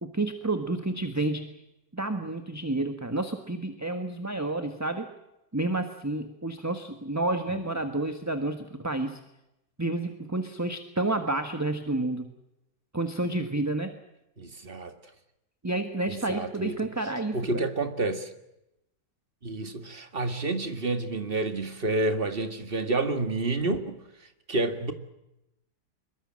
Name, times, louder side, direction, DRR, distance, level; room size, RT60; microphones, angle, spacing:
voice 1, 0.0-1.6 1.9-5.1 5.5-9.2 9.8-12.3 12.9-14.0 15.6-17.6, right 2 dB, 10° right, 7 dB, 1.3 m, -30 dB
voice 2, 14.4-15.0 16.1-16.8 17.3-18.3 19.4-24.0 24.5-24.9, right 2 dB, 30° right, 8 dB, 2.1 m, -29 dB
25.0 x 22.5 x 7.6 m, 0.89 s
omnidirectional pair, 2.1 m